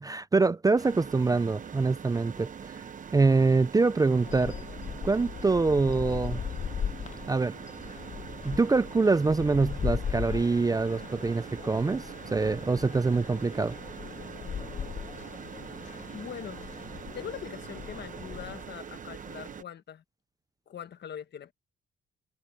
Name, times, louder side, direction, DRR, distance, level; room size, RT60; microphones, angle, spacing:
voice 1, 0.0-2.5 3.1-4.5 5.0-6.4 7.3-7.5 8.4-13.7, right 3 dB, 20° right, 0.5 m, -25 dB
sound 1, 0.8-19.6, right 7 dB, 40° right, 1.0 m, -43 dB
sound 2, 4.2-18.6, left 7 dB, 40° left, 0.6 m, -38 dB
voice 2, 16.1-16.6 17.1-20.0 20.7-21.5, left 8 dB, 60° left, 1.5 m, -42 dB
cardioid pair, 90°, 20 cm